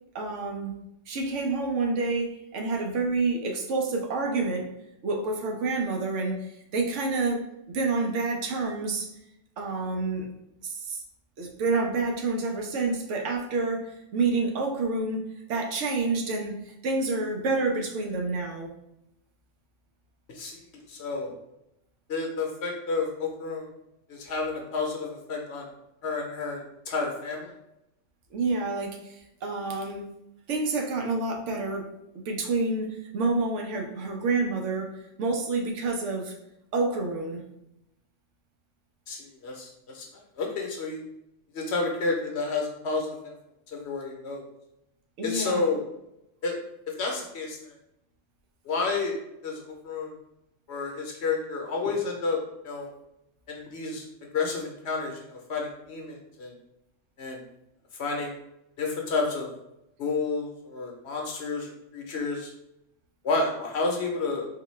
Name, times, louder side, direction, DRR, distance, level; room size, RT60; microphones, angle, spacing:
voice 1, 0.1-0.7 1.1-4.7 5.0-6.4 6.7-7.4 7.7-9.1 9.6-10.3 10.6-11.0 11.4-18.7 28.3-30.1 30.5-31.9 32.3-34.9 35.2-36.3 36.7-37.4 45.2-45.6, right 3 dB, 75° right, 2 dB, 0.9 m, -28 dB
voice 2, 20.3-20.6 20.9-21.3 22.1-23.7 24.1-25.7 26.0-27.5 39.1-41.0 41.5-43.3 43.7-44.4 45.2-45.8 46.4-46.6 47.0-47.7 48.6-49.1 49.4-50.1 50.7-52.4 52.6-52.9 53.5-54.0 54.3-56.5 57.2-57.4 58.0-58.3 58.8-59.5 60.0-62.5 63.2-64.5, left 3 dB, 65° left, 0 dB, 0.9 m, -30 dB
3.8 x 2.2 x 3.1 m, 0.84 s
omnidirectional pair, 1.3 m